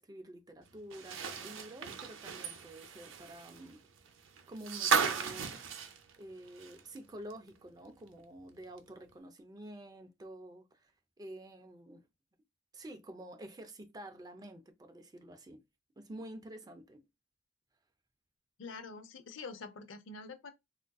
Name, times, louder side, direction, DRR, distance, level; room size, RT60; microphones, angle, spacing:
voice 1, 0.0-3.8 4.5-5.9 6.2-10.9 11.2-12.1 12.7-15.6 16.0-17.1, right 1 dB, 20° right, 0.4 m, -49 dB
sound 1, 0.9-7.0 7.3-7.4 8.8-8.9, right 6 dB, 80° right, 0.5 m, -35 dB
voice 2, 18.6-20.5, left 4 dB, 80° left, 0.5 m, -46 dB
3.6 x 2.5 x 2.2 m
head